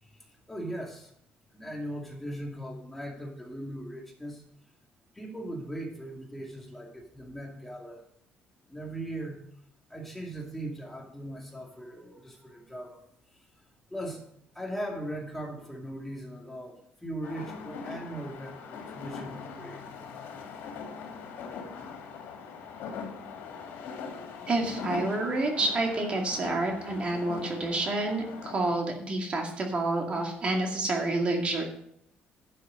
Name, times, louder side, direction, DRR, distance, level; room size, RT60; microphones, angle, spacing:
voice 1, 0.0-1.1 1.5-4.4 5.1-8.0 8.7-9.4 9.9-13.0 13.3-13.5 13.9-14.2 14.5-19.8, right 1 dB, 5° left, -1 dB, 2.4 m, -39 dB
sound 1, 17.2-28.7, left 5 dB, 85° left, 2.7 m, -41 dB
voice 2, 24.5-31.6, right 2 dB, 35° right, 2 dB, 2.1 m, -29 dB
11.5 x 6.5 x 6.4 m, 0.70 s
cardioid pair, 130°, 3 cm